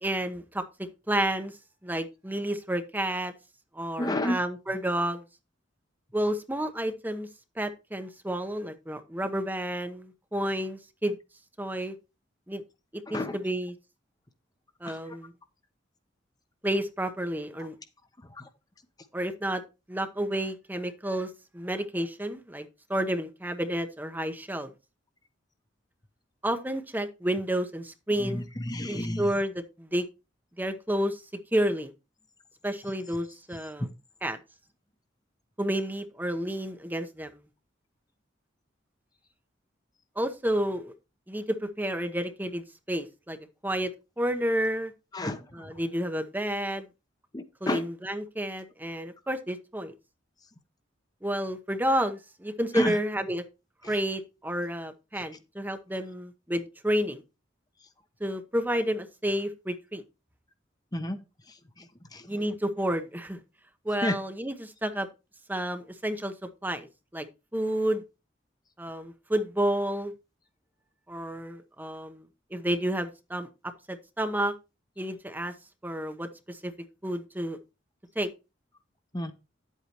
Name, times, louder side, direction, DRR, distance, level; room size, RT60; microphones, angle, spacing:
voice 1, 0.0-0.6 1.1-1.5 1.8-3.3 3.7-5.2 6.1-7.3 7.6-11.2 11.6-11.9 12.5-12.6 13.1-13.7 14.8-15.3 16.6-17.7 19.1-19.6 19.9-24.7 26.4-28.5 28.9-29.5 29.8-30.0 30.6-31.2 31.5-31.9 32.6-33.9 34.2-34.4 35.6-37.4 40.2-40.9 41.3-43.4 43.6-43.9 44.2-44.9 45.5-46.9 47.6-49.9 51.2-53.4 53.9-57.2 58.2-60.0 62.3-63.4 63.8-65.1 65.5-66.3 66.6-66.9 67.1-67.3 67.5-68.0 68.8-70.1 71.1-72.2 72.5-73.5 73.9-74.5 75.0-75.5 75.8-76.7 77.0-77.6 78.1-78.3, right 1 dB, 10° right, 1.0 m, -30 dB
voice 2, 4.0-4.4 13.1-13.4 14.8-15.2 18.2-18.5 28.2-29.3 33.8-33.9 45.1-45.7 47.3-47.8 52.7-53.0 53.8-54.0 60.9-61.2 61.5-62.5 64.0-64.2 79.1-79.3, left 1 dB, 20° left, 0.9 m, -32 dB
10.0 x 8.3 x 3.0 m
head